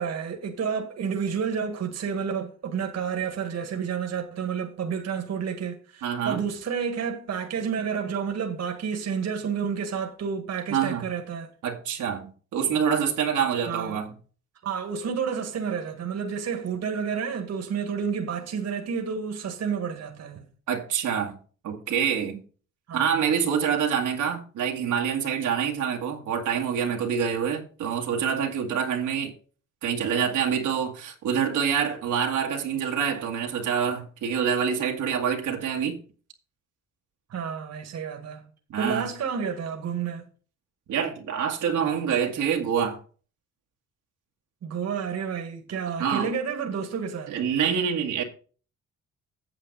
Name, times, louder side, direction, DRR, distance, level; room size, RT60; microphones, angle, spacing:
voice 1, 0.0-11.5 13.7-14.0 14.6-20.5 22.9-23.5 37.3-38.4 38.8-40.3 44.6-47.4, right 6 dB, 60° right, 1.8 m, -30 dB
voice 2, 6.0-6.4 10.7-11.1 11.6-14.1 20.7-21.4 21.6-22.4 22.9-29.3 29.8-36.0 38.7-39.1 40.9-43.0 46.0-46.3 47.3-48.2, right 7 dB, 80° right, 1.9 m, -26 dB
8.7 x 7.5 x 4.1 m
cardioid pair, 90°, 30 cm